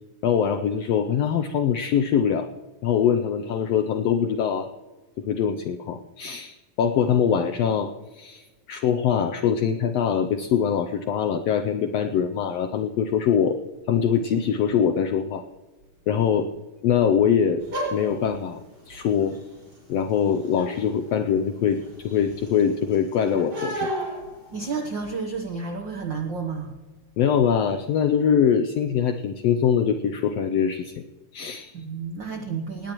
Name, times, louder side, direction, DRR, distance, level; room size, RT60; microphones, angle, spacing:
voice 1, 0.2-2.5 2.8-4.7 5.3-13.6 13.9-15.4 16.1-16.5 16.8-17.6 17.9-18.6 18.9-19.4 19.9-23.9 27.2-30.9 31.3-31.7, left 8 dB, 80° left, 9 dB, 1.4 m, -23 dB
sound 1, 17.6-25.1, right 1 dB, 30° right, 5.9 m, -36 dB
voice 2, 24.5-26.7 31.7-32.9, right 5 dB, 75° right, 4 dB, 1.0 m, -31 dB
18.5 x 17.5 x 3.0 m, 1.2 s
omnidirectional pair, 3.6 m